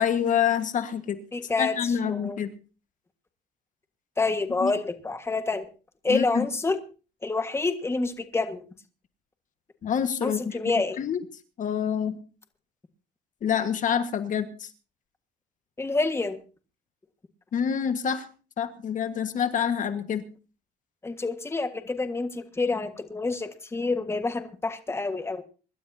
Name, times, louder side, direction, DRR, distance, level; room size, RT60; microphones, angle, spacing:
voice 1, 0.0-1.2 1.6-2.5 4.6-4.7 6.1-6.5 9.8-10.6 11.0-11.2 11.6-12.2 13.4-14.7 17.5-18.3 18.6-20.2, left 8 dB, 50° left, 9 dB, 1.5 m, -27 dB
voice 2, 1.3-2.4 4.2-5.7 6.0-6.8 7.2-8.6 10.2-11.0 15.8-16.4 21.0-25.4, left 3 dB, 15° left, 8 dB, 1.5 m, -28 dB
25.0 x 12.5 x 2.8 m, 0.36 s
cardioid pair, 110°, 17 cm